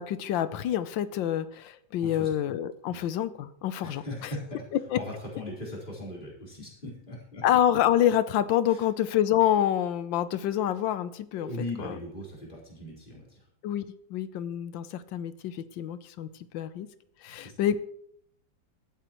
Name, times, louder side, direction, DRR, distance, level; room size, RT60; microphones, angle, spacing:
voice 1, 0.0-4.0 4.9-5.0 7.4-11.5 11.8-12.0 13.6-13.8 14.1-16.3 16.5-16.9 17.2-17.8, left 11 dB, 85° left, 13 dB, 1.4 m, -27 dB
voice 2, 2.0-2.3 2.9-3.1 3.8-4.6 4.9-7.4 8.7-8.8 11.3-13.4 17.4-17.5, left 1 dB, 25° left, -5 dB, 4.5 m, -39 dB
23.5 x 8.4 x 3.0 m, 0.69 s
omnidirectional pair, 2.0 m